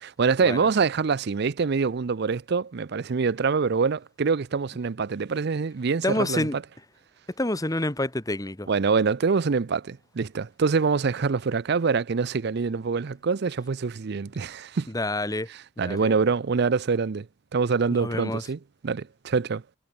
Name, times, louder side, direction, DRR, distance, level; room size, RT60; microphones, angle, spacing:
voice 1, 0.0-6.6 8.7-14.9 15.5-17.3 17.5-19.6, right 5 dB, 55° right, 0.5 m, -25 dB
voice 2, 6.0-6.6 7.4-8.7 14.9-15.5 15.8-16.1 17.9-18.4, left 1 dB, 20° left, 1.6 m, -28 dB
head